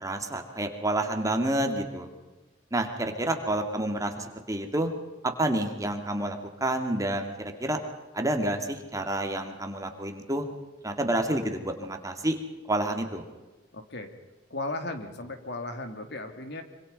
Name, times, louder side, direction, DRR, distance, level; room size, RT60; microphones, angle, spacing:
voice 1, 0.0-2.1 2.7-4.9 5.2-7.8 8.1-10.5 10.8-12.4 12.7-13.2, right 1 dB, 20° right, 4 dB, 2.5 m, -29 dB
voice 2, 13.7-14.1 14.5-16.6, left 2 dB, 65° left, 6 dB, 2.9 m, -36 dB
25.5 x 25.5 x 5.5 m, 1.1 s
head